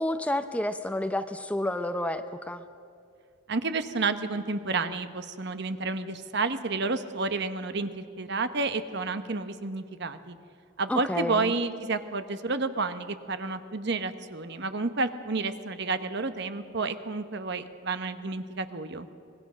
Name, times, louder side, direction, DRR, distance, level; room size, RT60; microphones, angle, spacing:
voice 1, 0.0-2.6 10.9-11.5, left 1 dB, 5° left, 9 dB, 0.6 m, -30 dB
voice 2, 3.5-10.4 10.8-19.1, right 3 dB, 55° right, 10 dB, 1.1 m, -30 dB
25.0 x 20.5 x 6.3 m, 2.4 s
head